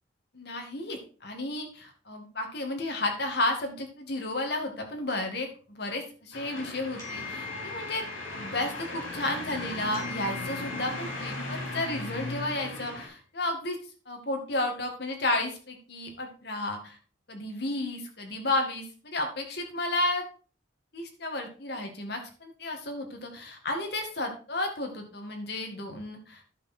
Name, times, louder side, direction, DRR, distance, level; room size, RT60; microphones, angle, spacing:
voice 1, 0.3-8.0 8.3-13.8 14.1-17.0 17.3-20.3 20.9-26.4, left 2 dB, 55° left, 3 dB, 2.1 m, -32 dB
sound 1, 6.3-13.1, left 2 dB, 90° left, 4.2 m, -37 dB
sound 2, 7.0-9.6 9.9-12.5, left 6 dB, 20° left, 5.5 m, -44 dB
11.0 x 6.3 x 4.4 m, 0.38 s
head